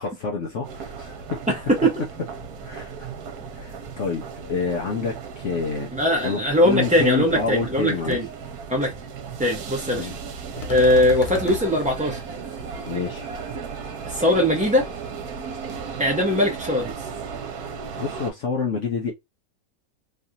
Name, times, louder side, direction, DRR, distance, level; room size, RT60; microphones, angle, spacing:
voice 1, 0.0-1.4 2.6-3.1 3.5-5.9 6.2-8.2 10.0-10.2 12.8-13.3 18.0-19.1, left 5 dB, 60° left, 1.0 m, -28 dB
sound 1, 0.6-18.3, right 6 dB, 75° right, 1.3 m, -35 dB
voice 2, 1.5-1.9 5.9-8.3 8.7-8.9 9.4-10.1 10.7-12.2 14.0-14.9 16.0-16.9, left 1 dB, 10° right, 0.4 m, -20 dB
sound 2, 7.1-7.2 7.6-7.8 8.1-8.2 10.6-11.6, left 5 dB, 80° left, 1.4 m, -33 dB
3.2 x 2.5 x 2.7 m
omnidirectional pair, 1.6 m